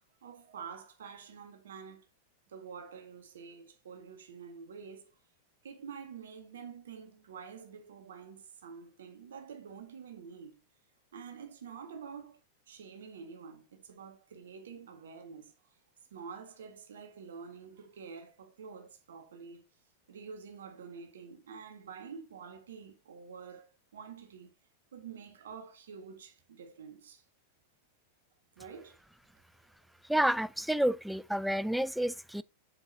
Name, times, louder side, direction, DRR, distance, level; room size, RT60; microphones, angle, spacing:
voice 1, 0.0-2.0 2.5-5.1 5.6-10.6 11.1-12.4 12.7-15.5 16.1-19.7 20.1-24.6 24.9-27.2 28.6-29.0, right 6 dB, 65° right, 1.8 m, -48 dB
voice 2, 30.1-32.4, right 1 dB, ahead, 0.4 m, -29 dB
7.9 x 7.2 x 2.8 m
figure-of-eight pair, 90°, 0 cm